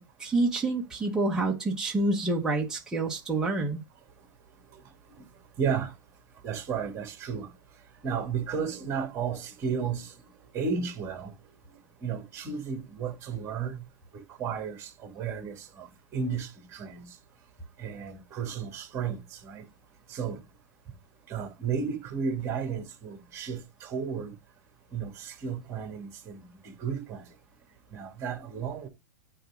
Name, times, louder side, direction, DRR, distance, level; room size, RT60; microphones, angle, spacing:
voice 1, 0.0-3.8, right 2 dB, 5° right, 1.3 m, -28 dB
voice 2, 5.6-5.9 6.4-7.5 8.0-10.1 10.5-11.3 12.0-13.9 14.1-17.1 17.8-19.7 20.1-20.4 21.3-24.3 24.9-27.3 27.9-28.9, right 6 dB, 25° right, 2.7 m, -33 dB
9.1 x 3.8 x 5.0 m
hypercardioid pair, 145°, 11 cm